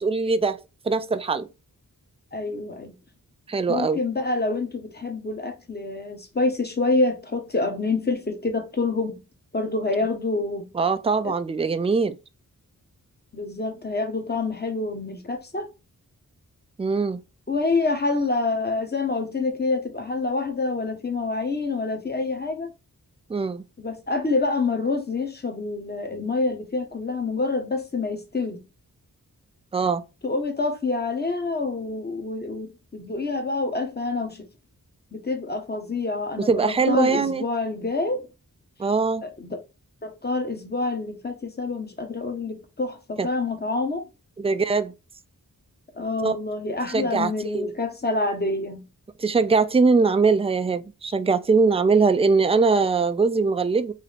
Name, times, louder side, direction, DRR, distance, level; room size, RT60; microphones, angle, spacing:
voice 1, 0.0-1.5 3.5-4.0 10.7-12.2 16.8-17.2 23.3-23.6 29.7-30.0 36.4-37.4 38.8-39.2 43.2-43.3 44.4-44.9 46.2-46.4 46.8-47.7 49.2-53.9, right 4 dB, 15° right, 0.4 m, -22 dB
voice 2, 2.3-2.9 3.7-9.2 9.5-10.7 11.2-11.3 13.3-15.7 17.5-22.7 23.8-28.7 30.2-34.5 35.1-38.3 39.2-39.6 40.0-44.1 46.0-48.9, left 3 dB, 25° left, 1.1 m, -27 dB
3.6 x 2.8 x 3.4 m
cardioid pair, 50°, 36 cm